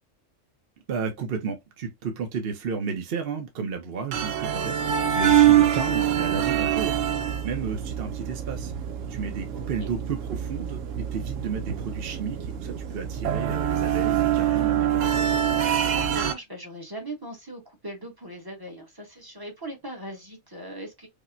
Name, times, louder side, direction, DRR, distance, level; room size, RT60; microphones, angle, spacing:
voice 1, 0.9-8.7 9.1-15.2, right 5 dB, 55° right, 0.8 m, -33 dB
sound 1, 4.1-16.3, right 10 dB, 90° right, 1.0 m, -25 dB
voice 2, 15.9-21.1, right 1 dB, 20° right, 0.8 m, -38 dB
4.9 x 2.1 x 2.5 m
omnidirectional pair, 1.3 m